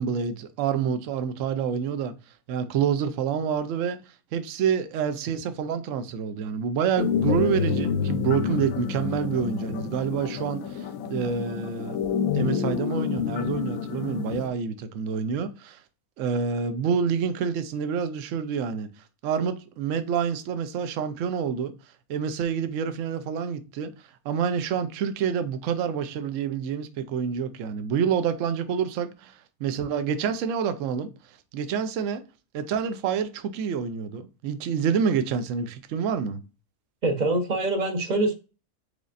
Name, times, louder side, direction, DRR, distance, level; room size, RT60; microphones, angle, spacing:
voice 1, 0.0-2.1 2.5-4.0 4.3-12.0 12.3-15.8 16.2-18.9 19.2-21.7 22.1-23.9 24.2-31.1 31.5-32.2 32.5-36.4, right 7 dB, 65° right, 0.9 m, -27 dB
sound 1, 7.0-14.5, left 7 dB, 70° left, 0.9 m, -28 dB
voice 2, 37.0-38.3, right 2 dB, 40° right, 0.7 m, -24 dB
4.9 x 4.0 x 2.5 m
omnidirectional pair, 1.6 m